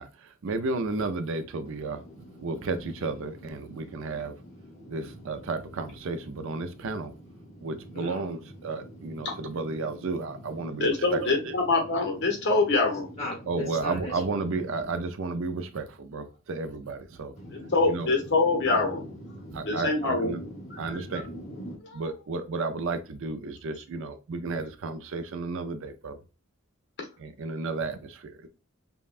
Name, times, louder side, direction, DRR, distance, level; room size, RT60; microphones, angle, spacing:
voice 1, 0.0-2.0 2.4-4.4 4.9-7.1 7.6-11.5 13.5-17.3 17.9-18.1 19.5-20.4 20.8-21.3 21.9-26.2 27.2-28.5, right 3 dB, 65° right, 0.5 m, -33 dB
voice 2, 1.8-2.6 3.6-5.1 6.6-6.9 7.4-8.2 8.6-10.0 10.6-10.9 13.2-14.2 17.4-17.7 18.5-21.8, equal, 35° left, 1.8 m, -42 dB
voice 3, 10.8-13.1 17.5-19.0 19.6-20.3 20.7-21.2, left 3 dB, 60° left, 1.1 m, -25 dB
5.2 x 2.2 x 2.4 m
head